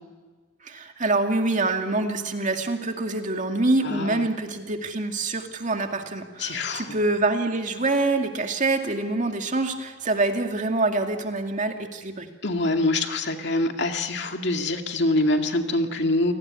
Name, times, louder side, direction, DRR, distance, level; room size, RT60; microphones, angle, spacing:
voice 1, 0.6-12.3, right 2 dB, 45° right, 5 dB, 2.3 m, -25 dB
voice 2, 3.8-4.3 6.4-7.0 12.4-16.3, left 2 dB, 65° left, 5 dB, 2.2 m, -25 dB
29.0 x 19.0 x 9.7 m, 1.4 s
head